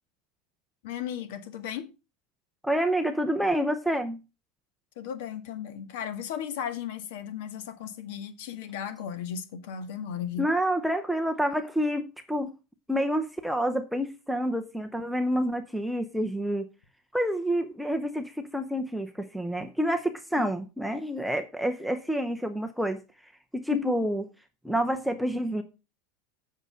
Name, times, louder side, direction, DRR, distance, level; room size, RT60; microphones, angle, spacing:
voice 1, 0.8-1.9 5.0-10.5 20.4-20.5 23.7-24.0, left 9 dB, 55° left, 1.9 m, -35 dB
voice 2, 2.6-4.2 10.4-12.0 12.3-12.5 12.9-16.7 17.1-23.0 23.5-24.2 24.6-25.6, equal, ahead, 0.6 m, -28 dB
7.9 x 6.5 x 6.2 m
supercardioid pair, 175°, 0 cm